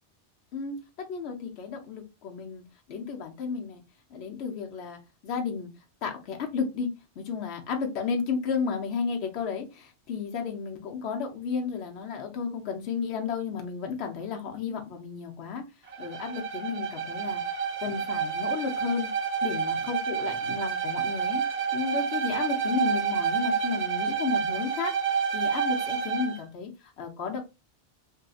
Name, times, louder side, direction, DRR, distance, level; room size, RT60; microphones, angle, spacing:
voice 1, 0.5-3.8 4.1-5.7 6.0-6.9 7.2-15.6 16.0-19.1 19.4-21.4 21.7-27.4, left 6 dB, 70° left, 3 dB, 1.0 m, -33 dB
Bowed string instrument, 15.9-26.4, right 6 dB, 55° right, 0.4 m, -29 dB
2.7 x 2.6 x 2.3 m, 0.26 s
omnidirectional pair, 1.1 m